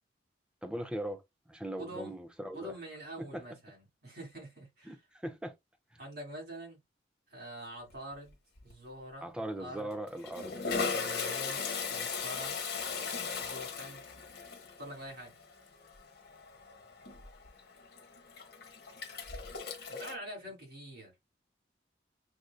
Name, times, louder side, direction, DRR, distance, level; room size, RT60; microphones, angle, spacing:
voice 1, 0.6-1.2 1.5-2.7 3.2-3.4 4.9-5.5 9.2-10.5 11.9-12.1 12.9-13.1, right 1 dB, 5° right, 0.5 m, -40 dB
voice 2, 1.8-2.2 2.5-5.0 6.0-6.8 7.3-8.4 8.6-9.9 10.9-12.6 13.4-14.0 14.8-15.3 19.9-21.1, right 1 dB, 60° right, 2.6 m, -45 dB
Toilet flush, 7.9-8.3 8.6-8.7 9.7-20.2, left 5 dB, 60° left, 1.2 m, -38 dB
6.2 x 2.6 x 2.3 m
head